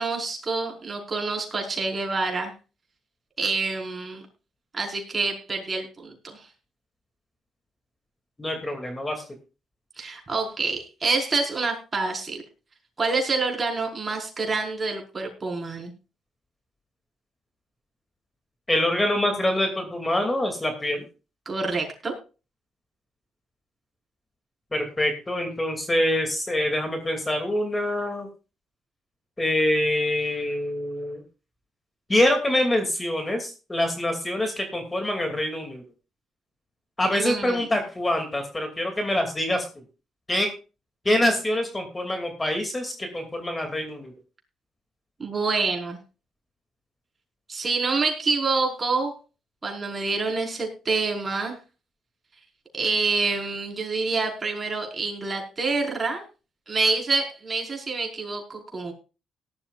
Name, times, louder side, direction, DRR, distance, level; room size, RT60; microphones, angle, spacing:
voice 1, 0.0-2.5 3.4-4.2 4.7-6.4 10.0-12.4 13.0-15.9 21.4-22.1 37.1-37.7 45.2-46.0 47.5-49.1 49.6-51.6 52.7-56.2 56.7-58.9, right 3 dB, 30° right, 1 dB, 5.2 m, -27 dB
voice 2, 8.4-9.2 18.7-21.0 24.7-28.3 29.4-31.2 32.1-35.8 37.0-39.6 40.3-40.5 41.0-44.1, left 1 dB, 20° left, 5 dB, 2.7 m, -25 dB
18.0 x 12.5 x 2.5 m, 0.32 s
cardioid pair, 90°, 0 cm